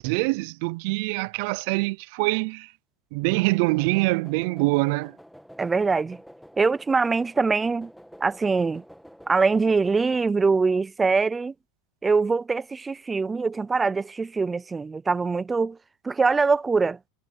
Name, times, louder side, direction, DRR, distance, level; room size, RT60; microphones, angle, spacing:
voice 1, 0.0-2.7 3.1-5.1, right 25 dB, 65° right, 0.6 m, -24 dB
sound 1, 3.3-10.2, equal, ahead, 1.9 m, -48 dB
voice 2, 5.6-6.2 6.6-7.9 8.2-8.8 9.3-11.5 12.0-15.8 16.0-17.0, right 4 dB, 15° right, 0.5 m, -23 dB
supercardioid pair, 125°, 0 cm